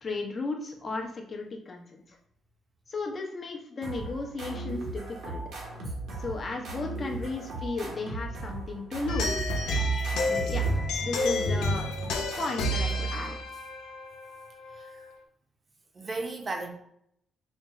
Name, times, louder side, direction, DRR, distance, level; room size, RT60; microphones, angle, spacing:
voice 1, 0.0-2.2 2.9-5.4 6.2-9.4 10.3-10.6 11.0-11.9 12.4-13.3, left 3 dB, 40° left, 1 dB, 0.8 m, -35 dB
sound 1, 3.8-13.3, right 2 dB, 80° right, 1.1 m, -38 dB
sound 2, 9.1-14.9, equal, 90° left, 0.5 m, -29 dB
voice 2, 9.6-10.6 13.1-13.2 14.7-15.1 15.9-16.7, right 3 dB, 35° right, 3 dB, 0.7 m, -38 dB
4.3 x 2.1 x 3.6 m, 0.71 s
cardioid pair, 90°, 0 cm